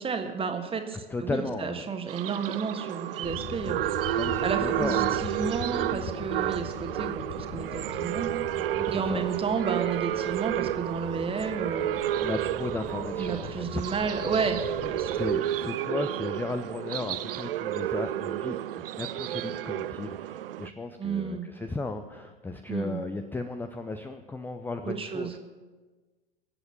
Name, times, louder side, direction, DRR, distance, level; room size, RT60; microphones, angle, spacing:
voice 1, 0.0-4.0 4.4-8.4 8.9-12.0 13.2-15.1 21.0-21.5 22.7-23.0 24.9-25.4, right 5 dB, 20° right, 5 dB, 1.6 m, -32 dB
voice 2, 1.1-1.8 4.1-5.1 8.8-9.2 12.2-13.8 15.1-18.6 19.0-25.4, left 3 dB, 5° left, 7 dB, 0.6 m, -35 dB
sound 1, 2.1-20.7, right 13 dB, 65° right, 0.4 m, -31 dB
sound 2, 3.2-15.4, left 10 dB, 35° left, 0.9 m, -42 dB
23.5 x 8.0 x 5.3 m, 1.3 s
figure-of-eight pair, 85°, 30 cm